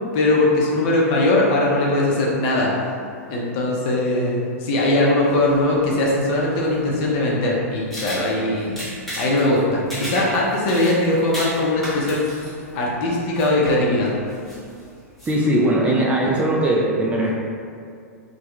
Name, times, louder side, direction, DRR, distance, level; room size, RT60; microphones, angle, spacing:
voice 1, 0.1-2.7 3.3-8.8 9.2-12.2 12.7-14.1, left 2 dB, 45° left, -4 dB, 0.6 m, -20 dB
sound 1, 5.3-15.3, equal, ahead, 0.8 m, -35 dB
voice 2, 15.3-17.3, right 1 dB, 15° right, -4 dB, 0.3 m, -20 dB
2.2 x 2.2 x 2.9 m, 2.3 s
hypercardioid pair, 105°, 8 cm